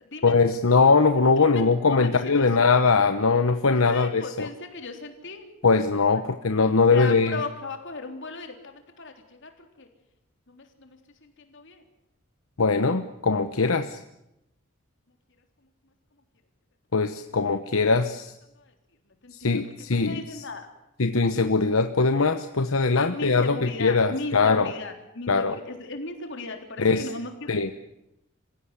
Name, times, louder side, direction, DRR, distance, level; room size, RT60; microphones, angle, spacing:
voice 1, 0.2-4.5 5.6-7.3 12.6-14.0 16.9-18.3 19.3-20.4 21.0-24.7 25.3-25.6 26.8-27.1 27.5-27.7, left 4 dB, 85° left, 8 dB, 1.0 m, -21 dB
voice 2, 1.9-2.7 3.8-5.5 6.1-6.2 6.7-9.9 10.5-11.8 18.5-18.8 19.1-20.7 22.9-27.5, left 3 dB, 65° left, 5 dB, 3.7 m, -37 dB
27.0 x 16.0 x 9.8 m, 0.87 s
head